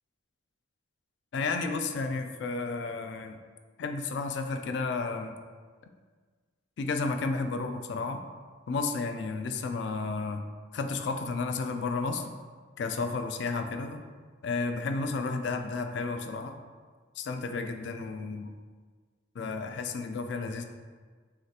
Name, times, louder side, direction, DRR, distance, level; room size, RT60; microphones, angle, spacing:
voice 1, 1.3-3.4 3.8-5.4 6.8-8.2 8.7-10.5 10.7-12.3 12.8-14.1 14.4-16.6 17.2-18.5 19.4-20.6, left 3 dB, 65° left, 7 dB, 0.3 m, -32 dB
6.2 x 2.4 x 2.8 m, 1.5 s
head